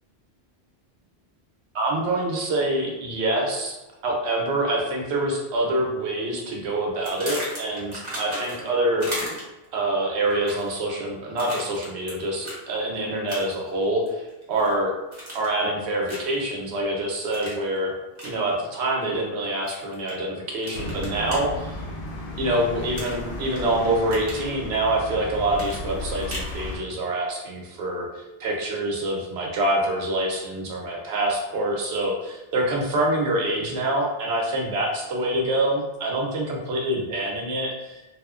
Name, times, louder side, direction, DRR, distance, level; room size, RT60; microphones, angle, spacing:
voice 1, 1.7-3.8 4.0-9.1 9.3-9.4 9.7-15.0 15.3-17.9 18.2-21.8 22.4-38.0, right 1 dB, 75° right, -1 dB, 0.9 m, -26 dB
sound 1, 7.0-8.7 9.0-9.6 10.3-10.8 11.4-12.1 12.4-12.6 13.3-13.7 14.1-14.7 15.1-15.6 16.1-16.4 17.3-17.6 18.1-18.3 19.7-20.1 20.6-21.4 22.9-23.6 23.9-24.5 25.5-26.5, equal, 30° right, 0.7 m, -35 dB
sound 2, 20.7-26.8, left 1 dB, 55° left, 0.6 m, -34 dB
2.8 x 2.1 x 2.3 m, 1.0 s
omnidirectional pair, 1.1 m